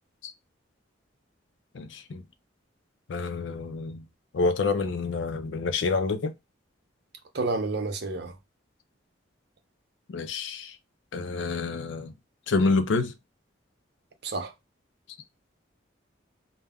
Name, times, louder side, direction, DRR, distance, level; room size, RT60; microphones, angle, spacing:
voice 1, 1.7-2.2 3.1-4.0 4.3-6.3 10.1-10.8 11.1-12.1 12.5-13.1, left 3 dB, 65° left, 0.4 m, -28 dB
voice 2, 7.3-8.4 14.2-14.5, right 3 dB, 55° right, 0.5 m, -29 dB
2.3 x 2.1 x 3.4 m
head